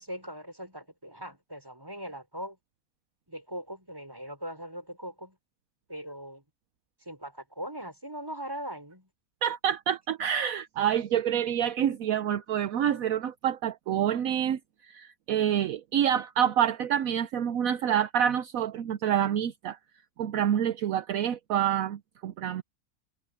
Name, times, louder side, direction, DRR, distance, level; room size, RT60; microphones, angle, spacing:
voice 1, 0.0-2.6 3.3-5.4 5.9-6.4 7.0-9.1, equal, 15° right, 5.1 m, -40 dB
voice 2, 9.4-19.8 20.2-22.6, right 9 dB, 70° right, 1.1 m, -27 dB
omnidirectional pair, 1.6 m